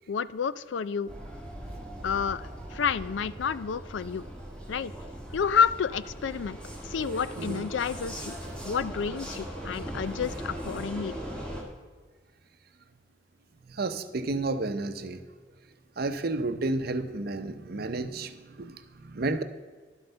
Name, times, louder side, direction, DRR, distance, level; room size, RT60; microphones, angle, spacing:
voice 1, 0.1-1.1 2.0-4.3 4.7-4.9 5.3-6.6 6.8-8.3 8.6-11.1, left 6 dB, 75° left, 17 dB, 0.4 m, -29 dB
Vehicle, 1.1-11.6, right 1 dB, 5° left, 2.0 m, -39 dB
voice 2, 7.4-7.7 13.7-15.3 16.0-19.4, right 2 dB, 55° right, 10 dB, 0.7 m, -31 dB
11.5 x 7.8 x 5.5 m, 1.5 s
head